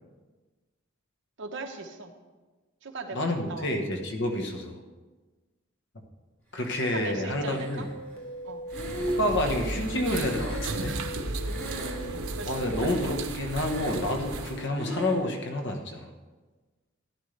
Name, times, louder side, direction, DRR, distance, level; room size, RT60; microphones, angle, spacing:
voice 1, 1.4-2.1 2.8-3.7 6.9-7.9 8.4-8.6 10.8-11.1 12.3-12.6, right 3 dB, 60° right, 4 dB, 1.1 m, -39 dB
voice 2, 3.1-4.8 6.5-7.9 9.2-11.0 12.5-16.0, left 1 dB, 60° left, 3 dB, 1.4 m, -29 dB
sound 1, 7.2-14.7, right 1 dB, 80° left, 1.1 m, -42 dB
Breathing, 7.4-8.1 8.7-11.2 11.4-12.2 12.6-13.2 13.5-14.2 14.8-15.2, equal, 10° left, 2.8 m, -36 dB
sound 2, 8.7-14.7, right 2 dB, 85° right, 0.9 m, -35 dB
14.0 x 10.0 x 3.4 m, 1.3 s
head